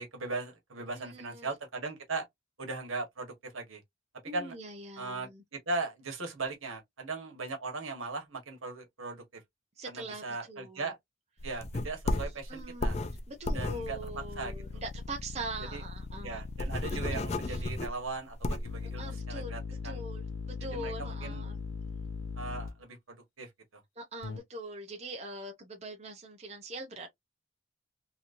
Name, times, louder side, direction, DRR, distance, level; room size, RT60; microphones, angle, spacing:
voice 1, 0.0-2.2 2.6-3.8 4.3-4.6 5.0-9.2 9.9-11.0 11.4-13.0 13.5-14.0 14.4-14.8 15.6-15.8 16.2-20.0 20.7-21.4 22.4-23.5, right 3 dB, 80° right, 1.3 m, -38 dB
voice 2, 0.9-1.5 4.2-5.4 9.8-10.9 12.2-12.9 13.3-16.4 17.1-17.2 17.4-17.6 19.0-21.6 24.0-27.1, right 2 dB, 30° right, 0.7 m, -43 dB
sound 1, 11.4-15.1 15.5-15.6 15.8-15.9 16.3-18.8, left 2 dB, 30° left, 0.4 m, -33 dB
sound 2, 13.4-17.3 18.6-22.8 24.2-24.4, left 4 dB, 80° left, 0.6 m, -40 dB
3.0 x 2.9 x 2.6 m
head